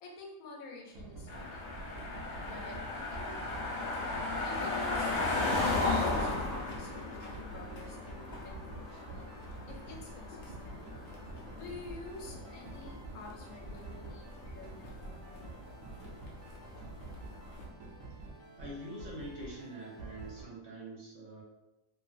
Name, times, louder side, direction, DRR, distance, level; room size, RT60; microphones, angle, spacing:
voice 1, 0.0-1.7 2.5-3.7 4.4-9.3 9.7-10.8 11.6-15.5, left 3 dB, 90° left, 0 dB, 1.1 m, -49 dB
sound 1, 0.8-20.4, right 3 dB, 80° right, 1.0 m, -49 dB
sound 2, 1.3-17.6, left 2 dB, 55° left, 0.5 m, -37 dB
Cricket, 5.6-6.4, right 1 dB, 40° right, 1.0 m, -53 dB
voice 2, 18.6-21.4, right 1 dB, 60° right, -4 dB, 0.9 m, -44 dB
2.6 x 2.4 x 2.4 m, 0.96 s
omnidirectional pair, 1.5 m